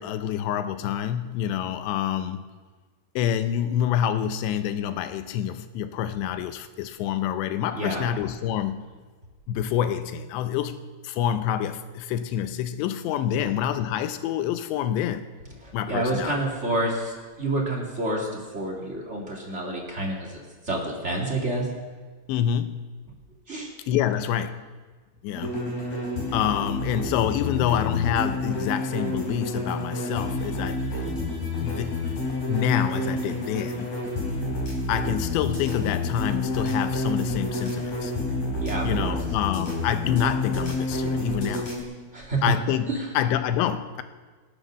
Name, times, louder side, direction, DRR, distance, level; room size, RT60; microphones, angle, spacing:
voice 1, 0.0-2.4 3.2-8.8 9.5-15.3 15.7-16.4 22.3-22.9 23.9-24.6 25.2-25.5 26.3-31.2 31.6-32.2 32.5-33.9 34.9-38.1 38.8-41.7 42.4-44.0, left 10 dB, 80° left, 10 dB, 2.8 m, -27 dB
voice 2, 7.7-8.1 13.3-13.4 15.6-20.4 20.6-21.7 23.5-23.7 38.6-39.2 42.1-42.5 42.9-43.0, right 2 dB, 40° right, -2 dB, 0.9 m, -28 dB
sound 1, 25.3-41.8, left 2 dB, 40° left, 5.2 m, -29 dB
25.5 x 8.8 x 6.3 m, 1.4 s
omnidirectional pair, 5.4 m